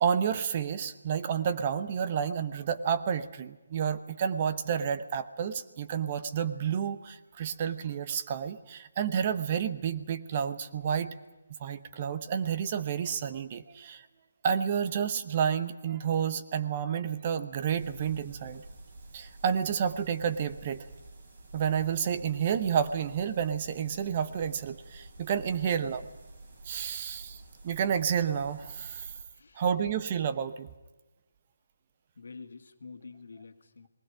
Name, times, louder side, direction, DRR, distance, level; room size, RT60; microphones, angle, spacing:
voice 1, 0.0-11.1 11.6-14.0 14.4-18.6 19.1-20.9 21.5-26.0 26.6-29.1 29.6-30.7, right 7 dB, 30° right, 11 dB, 0.9 m, -30 dB
sound 1, 17.7-29.2, right 2 dB, 50° right, 4.4 m, -49 dB
voice 2, 25.5-25.8 29.3-29.6 32.2-33.9, left 4 dB, 75° left, 7 dB, 1.9 m, -48 dB
20.0 x 16.0 x 10.0 m, 1.1 s
hypercardioid pair, 165°, 0 cm